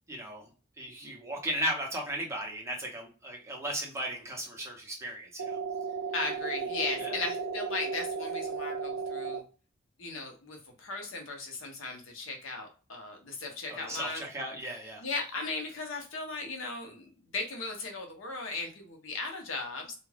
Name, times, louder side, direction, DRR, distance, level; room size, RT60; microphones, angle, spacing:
voice 1, 0.1-0.5 0.8-5.6 7.0-7.3 13.7-15.0, equal, 15° right, -1 dB, 0.8 m, -36 dB
sound 1, 5.4-9.4, right 5 dB, 60° right, 0.4 m, -34 dB
voice 2, 6.1-9.4 10.0-14.2 15.0-19.9, left 3 dB, 75° left, 2 dB, 0.8 m, -37 dB
2.4 x 2.3 x 3.2 m, 0.35 s
head